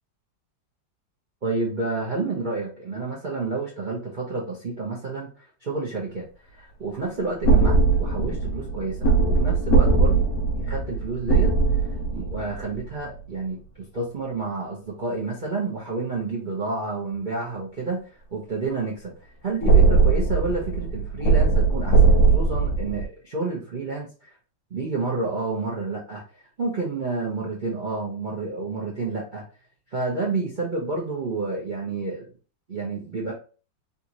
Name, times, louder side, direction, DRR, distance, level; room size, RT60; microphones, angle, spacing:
voice 1, 1.4-5.3 5.6-6.2 6.5-11.5 12.1-18.0 18.3-19.1 19.4-24.1 24.7-26.2 26.6-29.4 29.9-32.3 32.7-33.3, right 3 dB, 65° right, -4 dB, 0.4 m, -29 dB
sound 1, 7.4-13.1 19.6-23.0, right 3 dB, 65° left, 1.0 m, -20 dB
3.4 x 2.7 x 2.9 m, 0.37 s
omnidirectional pair, 2.1 m